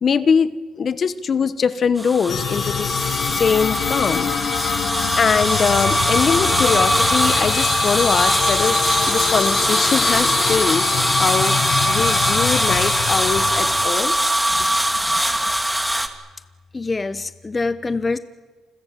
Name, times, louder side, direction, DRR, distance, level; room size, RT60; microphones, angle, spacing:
voice 1, 0.0-4.3 5.2-8.8 9.1-11.6 11.9-14.1, left 6 dB, 50° left, 15 dB, 1.2 m, -22 dB
sound 1, 2.0-16.1, right 1 dB, 5° right, 2.3 m, -21 dB
sound 2, 2.3-13.9, left 9 dB, 70° left, 1.4 m, -25 dB
voice 2, 14.5-15.4 16.7-18.2, left 3 dB, 25° left, 14 dB, 1.0 m, -27 dB
29.5 x 21.5 x 7.6 m, 1.4 s
cardioid pair, 90°, 0 cm